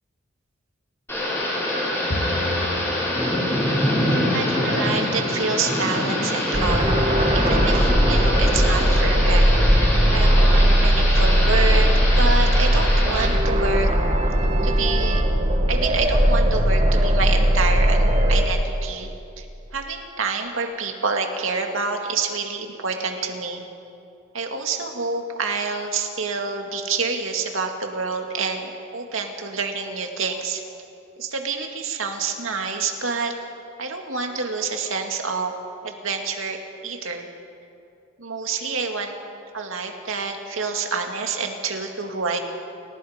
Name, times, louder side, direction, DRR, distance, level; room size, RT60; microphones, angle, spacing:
Thunder / Rain, 1.1-13.3, left 1 dB, 10° left, 6.5 m, -25 dB
Bowed string instrument, 2.1-5.5, left 1 dB, 45° left, 1.6 m, -34 dB
voice 1, 4.1-7.0 7.3-13.9 14.6-15.2 15.7-19.1 19.4-19.5 19.7-23.6 24.3-30.6 31.2-33.3 33.8-35.5 35.8-37.3 38.2-39.2 39.5-42.4, right 4 dB, 80° right, 3 dB, 2.2 m, -28 dB
sound 1, 6.5-18.4, equal, 35° right, 2.0 m, -18 dB
29.0 x 17.5 x 5.2 m, 2.6 s
head